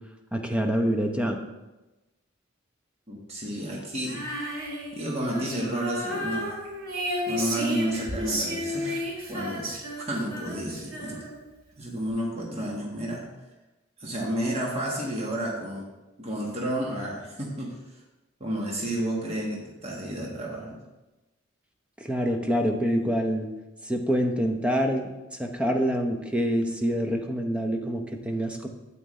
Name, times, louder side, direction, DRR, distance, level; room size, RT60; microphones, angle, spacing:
voice 1, 0.3-1.4 22.0-23.5 23.8-28.7, equal, 5° right, 3 dB, 0.7 m, -26 dB
voice 2, 3.1-4.2 4.9-6.5 7.3-9.7 10.0-11.2 11.8-13.2 14.0-15.9 16.2-17.7 18.4-20.8, right 1 dB, 30° right, -3 dB, 1.5 m, -31 dB
Female singing, 4.0-11.5, equal, 85° right, 2.2 m, -32 dB
9.0 x 8.2 x 3.2 m, 1.1 s
head